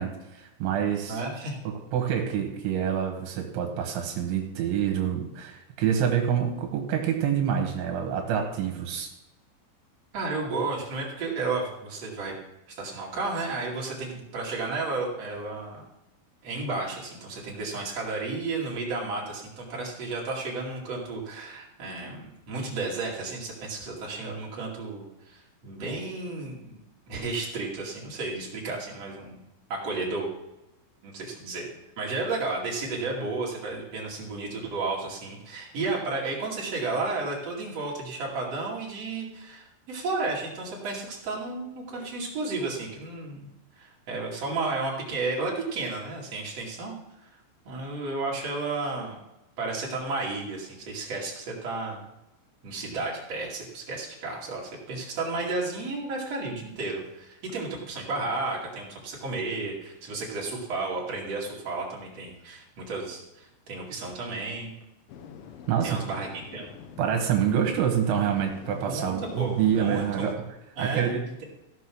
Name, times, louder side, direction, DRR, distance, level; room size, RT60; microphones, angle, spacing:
voice 1, 0.0-1.2 1.7-9.1 65.7-66.0 67.0-70.4 70.8-71.2, right 8 dB, 80° right, 2 dB, 3.7 m, -27 dB
voice 2, 1.1-1.6 10.1-12.3 12.7-15.8 16.4-26.8 27.1-29.4 29.7-30.3 31.0-31.7 32.0-43.5 43.8-47.0 47.6-49.2 49.6-52.0 52.6-64.7 65.8-66.7 68.8-70.3 70.8-71.1, right 3 dB, 40° right, -4 dB, 3.0 m, -32 dB
sound 1, 65.1-70.4, left 7 dB, 85° left, 3.4 m, -44 dB
16.0 x 5.8 x 6.2 m, 0.96 s
omnidirectional pair, 5.4 m